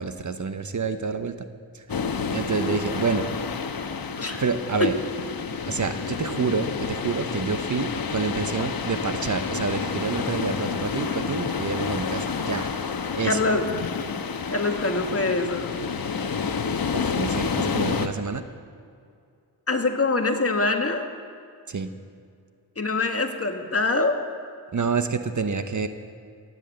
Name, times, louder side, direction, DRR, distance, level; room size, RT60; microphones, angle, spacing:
voice 1, 0.0-1.5 1.7-1.8 2.3-3.3 4.4-4.9 5.7-12.7 13.1-13.4 16.9-18.4 21.7-21.9 24.7-25.9, right 5 dB, 45° right, 9 dB, 0.9 m, -28 dB
sound 1, 1.9-18.1, left 5 dB, 55° left, 1.1 m, -29 dB
voice 2, 13.2-13.7 14.5-15.8 19.7-21.1 22.8-24.2, left 3 dB, 35° left, 4 dB, 1.6 m, -24 dB
16.0 x 9.2 x 7.8 m, 2.3 s
cardioid pair, 60°, 42 cm